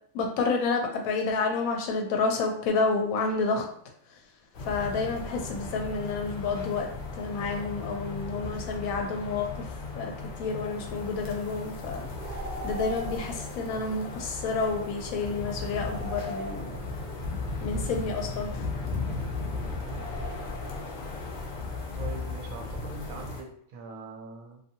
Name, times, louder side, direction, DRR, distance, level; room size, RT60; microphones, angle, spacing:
voice 1, 0.1-3.6 4.7-9.7 10.0-10.1 10.4-12.0 12.6-16.7 17.6-18.7, left 4 dB, 75° left, 2 dB, 1.0 m, -29 dB
sound 1, 4.5-23.4, left 3 dB, 55° left, 0.6 m, -36 dB
sound 2, 12.1-13.5 15.7-17.1 19.8-21.0, right 1 dB, 50° right, 0.7 m, -39 dB
voice 2, 19.8-20.4 21.9-24.6, right 4 dB, 75° right, 2 dB, 1.0 m, -43 dB
2.6 x 2.6 x 2.7 m, 0.62 s
omnidirectional pair, 1.5 m